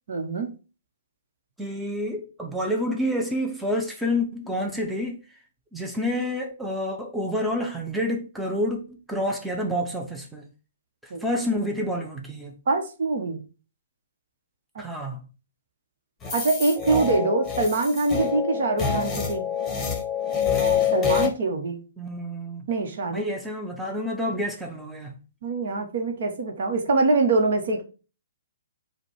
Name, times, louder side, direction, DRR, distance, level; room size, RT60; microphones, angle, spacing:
voice 1, 0.1-0.5 11.1-11.2 12.7-13.4 14.7-14.8 16.3-19.5 20.9-21.8 22.7-23.2 25.4-27.8, right 3 dB, 60° right, 1.1 m, -24 dB
voice 2, 1.6-5.4 5.7-10.5 11.0-12.6 14.8-15.2 22.0-22.7 23.1-25.2, left 1 dB, 5° right, 0.7 m, -28 dB
sound 1, 16.2-21.3, left 7 dB, 15° left, 1.1 m, -26 dB
4.9 x 2.3 x 4.7 m
figure-of-eight pair, 125°, 0 cm